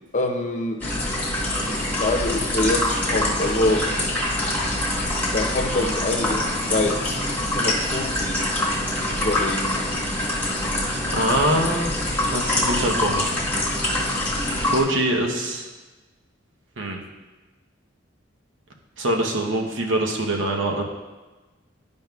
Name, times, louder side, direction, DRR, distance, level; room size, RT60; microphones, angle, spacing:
voice 1, 0.1-0.8 1.6-3.9 5.3-7.2 7.5-8.4 9.2-9.8, left 2 dB, 40° left, 2 dB, 0.7 m, -25 dB
sound 1, 0.8-14.8, left 1 dB, 10° left, 1.2 m, -25 dB
voice 2, 11.1-11.9 12.3-13.3 14.7-15.7 16.8-17.0 19.0-20.8, right 1 dB, 75° right, 1 dB, 0.9 m, -23 dB
10.5 x 5.2 x 2.3 m, 1.2 s
head